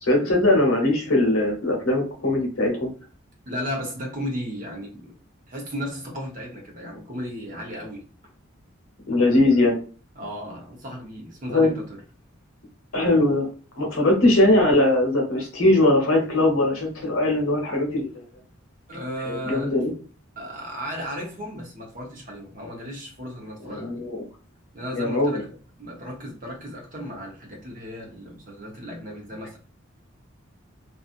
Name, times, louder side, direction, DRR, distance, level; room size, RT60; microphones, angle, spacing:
voice 1, 0.0-2.9 9.1-9.8 11.5-11.7 12.9-13.5 13.8-18.1 19.2-19.9 23.6-24.2 24.9-25.3, left 2 dB, 90° left, 1 dB, 1.1 m, -20 dB
voice 2, 3.5-5.1 5.5-8.0 9.1-9.2 10.2-12.0 18.9-19.8 20.4-24.0 24.7-25.5 25.8-29.6, equal, 40° right, 0 dB, 0.9 m, -35 dB
2.6 x 2.4 x 2.4 m, 0.37 s
head